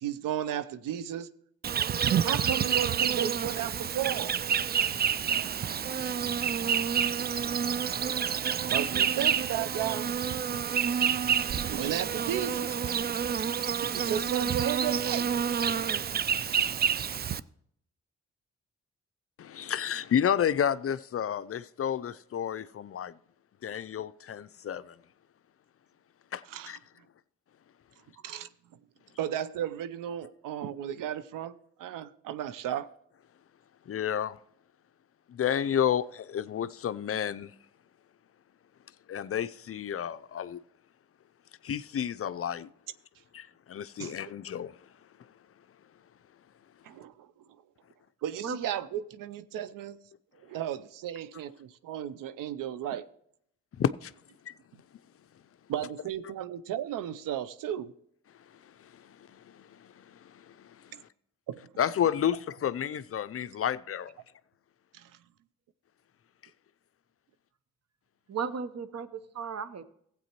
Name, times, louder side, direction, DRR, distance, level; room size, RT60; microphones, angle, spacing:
voice 1, 0.0-1.3 2.2-4.3 8.7-10.1 10.5-10.6 11.7-12.7 13.9-15.3 26.5-26.7 28.2-28.5 29.2-31.5 31.8-32.9 44.0-44.2 46.8-47.3 48.2-50.0 50.4-53.0 55.7-57.9 61.5-61.6 64.9-65.1, right 10 dB, 75° right, 0.6 m, -34 dB
Insect, 1.6-17.4, right 7 dB, 30° right, 0.4 m, -28 dB
voice 2, 19.4-23.1 23.6-25.0 26.3-26.8 33.9-34.4 35.3-37.5 39.1-40.6 41.6-42.7 43.3-44.8 53.8-54.1 54.5-54.6 58.6-61.1 61.8-64.1, left 9 dB, 45° left, 0.5 m, -31 dB
voice 3, 48.4-48.7 68.3-69.8, right 6 dB, 50° right, 0.9 m, -35 dB
15.0 x 8.4 x 3.0 m
supercardioid pair, 45°, 33 cm